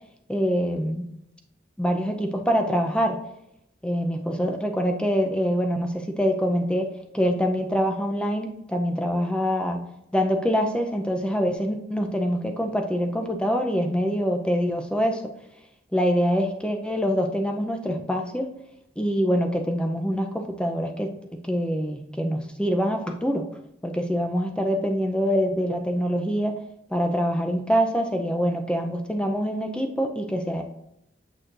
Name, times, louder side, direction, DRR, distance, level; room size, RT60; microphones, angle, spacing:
voice 1, 0.3-1.1 1.8-3.2 3.8-9.8 10.1-15.2 15.9-18.5 19.0-23.5 23.8-26.6 26.9-30.6, equal, 5° left, 3 dB, 0.6 m, -25 dB
8.6 x 6.3 x 2.6 m, 0.79 s
head